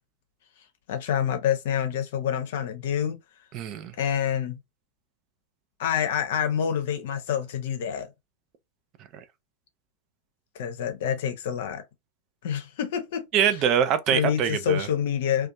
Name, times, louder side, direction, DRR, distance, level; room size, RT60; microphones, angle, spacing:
voice 1, 0.9-3.2 4.0-4.6 5.8-8.1 10.5-11.8 12.4-13.2 14.1-15.5, left 8 dB, 55° left, 0.6 m, -27 dB
voice 2, 3.5-3.9 9.1-9.2 13.3-14.9, right 8 dB, 35° right, 0.4 m, -24 dB
2.5 x 2.3 x 2.6 m
figure-of-eight pair, 90°, 0 cm